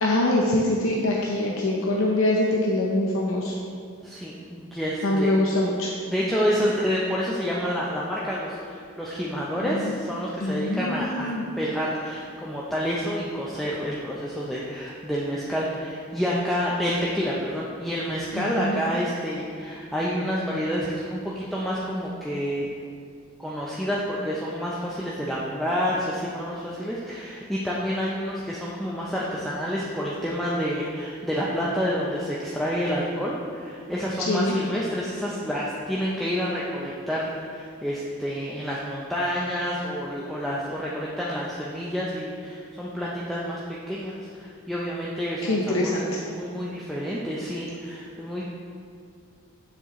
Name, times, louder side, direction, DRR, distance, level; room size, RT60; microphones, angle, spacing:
voice 1, 0.0-3.5 5.0-5.9 9.6-10.0 10.4-11.4 18.3-18.8 34.3-34.6 45.4-46.0, left 1 dB, 85° left, -2 dB, 0.7 m, -24 dB
voice 2, 4.0-5.3 6.1-22.7 23.4-45.9 46.2-48.4, equal, ahead, -6 dB, 0.5 m, -29 dB
7.1 x 6.7 x 3.0 m, 2.2 s
head